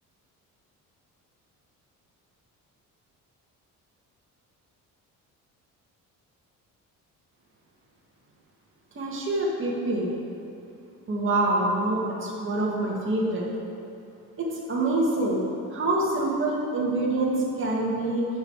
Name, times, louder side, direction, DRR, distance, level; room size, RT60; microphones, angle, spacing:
voice 1, 8.9-10.1 11.1-13.5 14.4-18.3, right 2 dB, 40° right, -4 dB, 2.0 m, -26 dB
12.0 x 6.5 x 4.8 m, 2.8 s
cardioid pair, 115°, 33 cm